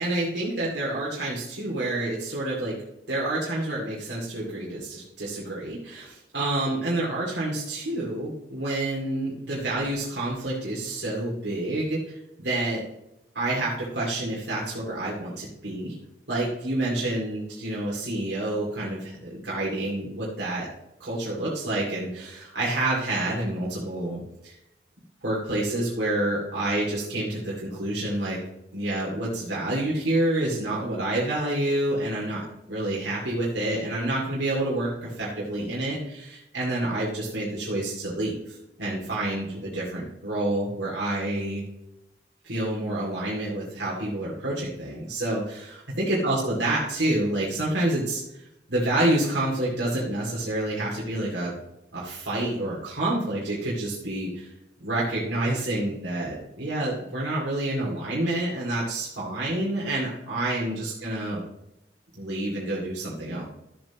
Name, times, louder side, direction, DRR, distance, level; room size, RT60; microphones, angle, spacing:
voice 1, 0.0-2.8 3.1-12.8 13.3-15.9 16.3-20.7 21.0-24.5 25.2-28.4 28.7-41.6 42.4-48.4 48.7-51.5 51.9-54.5 54.8-61.4 62.2-63.4, right 1 dB, 85° right, -6 dB, 2.5 m, -28 dB
13.5 x 7.6 x 3.0 m, 0.90 s
head